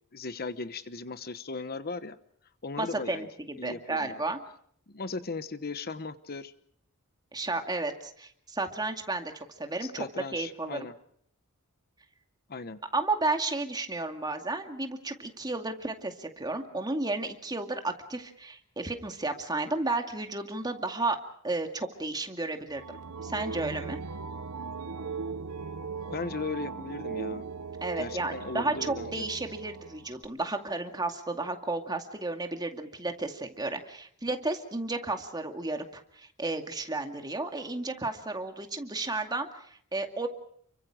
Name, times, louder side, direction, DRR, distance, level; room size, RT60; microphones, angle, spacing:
voice 1, 0.1-2.2 2.6-3.3 3.6-4.2 4.9-6.5 9.8-10.9 12.5-12.8 26.1-27.5 28.0-29.3, left 4 dB, 45° left, 12 dB, 1.0 m, -37 dB
voice 2, 2.8-4.4 7.3-10.0 10.3-10.9 12.9-21.2 21.4-24.0 27.8-40.3, right 2 dB, 20° right, 5 dB, 2.3 m, -33 dB
sound 1, 22.7-30.2, right 5 dB, 80° right, 1.1 m, -38 dB
30.0 x 24.0 x 5.0 m, 0.64 s
head